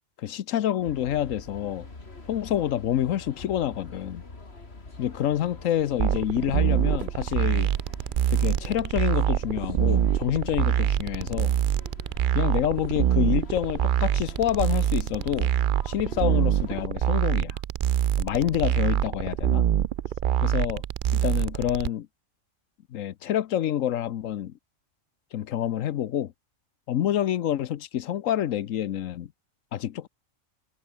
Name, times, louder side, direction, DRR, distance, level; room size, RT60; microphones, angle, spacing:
voice 1, 0.2-1.9 2.3-4.2 5.0-7.7 8.3-11.5 12.3-15.5 15.8-17.6 18.2-19.7 20.4-20.8 21.1-22.1 22.9-24.5 25.3-26.3 26.9-29.3 29.7-30.1, left 11 dB, 85° left, 1.1 m, -27 dB
sound 1, 0.8-16.9, left 3 dB, 50° left, 3.3 m, -45 dB
sound 2, 6.0-21.9, right 11 dB, 60° right, 0.5 m, -25 dB
omnidirectional pair, 1.3 m